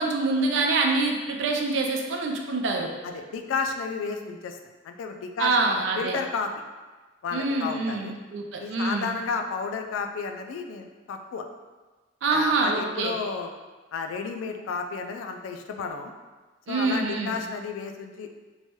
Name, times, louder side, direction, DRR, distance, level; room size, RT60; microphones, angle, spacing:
voice 1, 0.0-2.9 5.4-6.2 7.3-9.1 12.2-13.1 16.7-17.4, right 3 dB, 70° right, 1 dB, 0.4 m, -25 dB
voice 2, 3.0-4.6 4.8-6.5 7.2-8.1 8.6-11.5 12.3-13.5 13.9-16.1 16.7-18.3, left 5 dB, 90° left, 6 dB, 0.3 m, -32 dB
3.1 x 2.2 x 2.8 m, 1.3 s
head